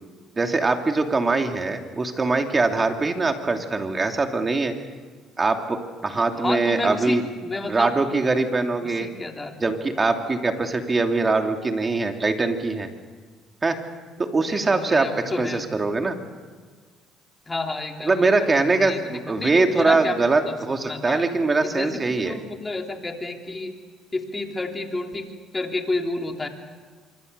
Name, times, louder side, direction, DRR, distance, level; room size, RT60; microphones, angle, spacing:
voice 1, 0.4-4.7 5.4-5.8 6.0-7.2 7.7-9.1 9.6-12.9 13.6-13.8 14.2-15.1 15.4-16.2 18.0-22.4, right 3 dB, 25° right, 5 dB, 2.9 m, -22 dB
voice 2, 6.1-7.9 8.8-9.6 10.6-10.7 14.5-15.6 17.5-21.2 21.6-23.8 24.1-26.5, left 2 dB, 20° left, 3 dB, 3.4 m, -31 dB
25.5 x 24.5 x 6.9 m, 1.5 s
supercardioid pair, 85°, 0 cm